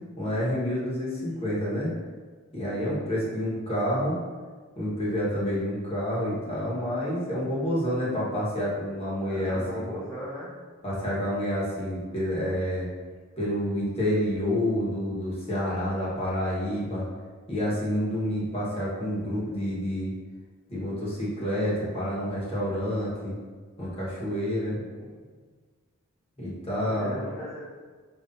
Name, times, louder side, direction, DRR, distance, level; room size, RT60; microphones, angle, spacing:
voice 1, 0.2-1.9 2.5-4.2 4.8-9.9 10.8-12.9 13.4-17.0 17.5-20.1 20.7-23.4 23.8-24.8 26.4-27.1, equal, 30° left, -7 dB, 1.3 m, -28 dB
voice 2, 9.2-10.5 24.6-25.2 26.7-27.6, equal, 10° left, -11 dB, 0.8 m, -38 dB
5.5 x 3.2 x 2.6 m, 1.5 s
head